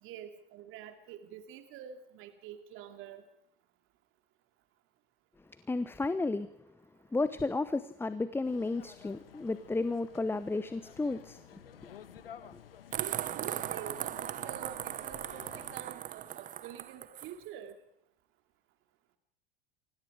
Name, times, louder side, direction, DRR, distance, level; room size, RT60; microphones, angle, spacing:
voice 1, 0.0-3.2 12.9-17.8, right 9 dB, 45° right, 2.6 m, -47 dB
voice 2, 5.7-6.5 7.1-11.6, left 3 dB, 10° left, 0.9 m, -33 dB
sound 1, 8.4-15.8, left 9 dB, 70° left, 1.3 m, -53 dB
sound 2, 12.9-17.3, right 11 dB, 25° right, 0.8 m, -38 dB
29.0 x 24.5 x 4.9 m
figure-of-eight pair, 80°, 29 cm